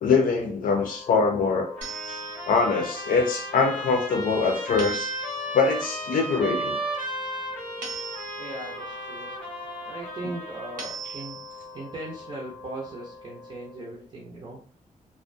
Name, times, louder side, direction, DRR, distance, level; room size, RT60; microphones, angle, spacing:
voice 1, 0.0-1.7 2.0-2.2 2.5-5.1 5.5-6.8, left 4 dB, 90° left, 3 dB, 0.5 m, -23 dB
Wind instrument woodwind instrument, 0.7-14.1, left 3 dB, 25° left, 0.4 m, -44 dB
Trumpet, 1.8-11.0, right 1 dB, 5° left, 0.8 m, -35 dB
sound 1, 1.8-2.7 4.8-5.6 7.8-8.7 10.8-11.7, right 6 dB, 75° right, 0.9 m, -39 dB
voice 2, 8.4-9.3 9.8-11.4 11.7-14.6, right 2 dB, 35° right, -4 dB, 0.5 m, -38 dB
2.4 x 2.1 x 2.5 m, 0.41 s
wide cardioid pair, 175°, 14 cm